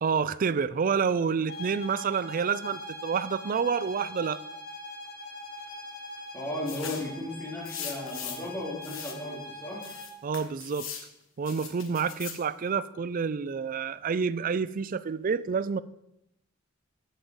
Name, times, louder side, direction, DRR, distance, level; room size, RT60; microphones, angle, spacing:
voice 1, 0.0-4.4 10.2-10.9 11.4-15.8, right 6 dB, 40° right, 0.4 m, -28 dB
sound 1, 1.5-10.2, left 1 dB, 55° left, 2.0 m, -42 dB
voice 2, 6.3-9.8, left 1 dB, 10° left, 3.1 m, -35 dB
sound 2, 6.7-7.1 7.7-8.5 8.8-9.2 9.8-11.1 11.5-12.4, left 8 dB, 70° left, 1.4 m, -40 dB
8.1 x 7.9 x 5.3 m
head